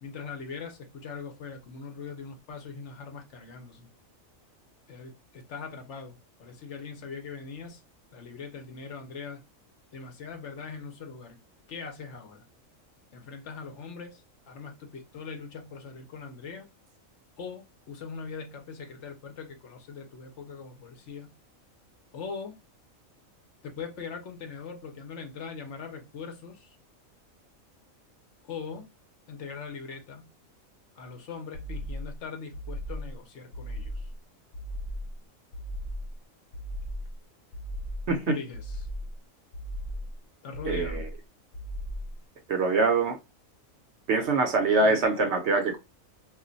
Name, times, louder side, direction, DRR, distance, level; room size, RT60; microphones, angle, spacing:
voice 1, 0.0-3.9 4.9-7.8 8.1-9.4 9.9-11.4 11.7-12.5 13.1-16.7 17.4-21.3 22.1-22.6 23.6-26.8 28.4-28.9 29.3-30.3 31.0-34.1 38.3-38.8 40.4-41.1, left 5 dB, 65° left, 0.9 m, -41 dB
sound 1, 31.5-32.2 32.5-33.2 33.5-34.2 34.5-35.2 35.5-36.2 36.5-37.2 37.5-38.2 38.5-39.2 39.5-40.2 40.5-41.2 41.5-42.2, equal, 85° left, 1.1 m, -36 dB
voice 2, 40.6-41.1 42.5-43.2 44.1-45.8, right 3 dB, 65° right, 0.8 m, -24 dB
2.4 x 2.1 x 3.8 m
omnidirectional pair, 1.4 m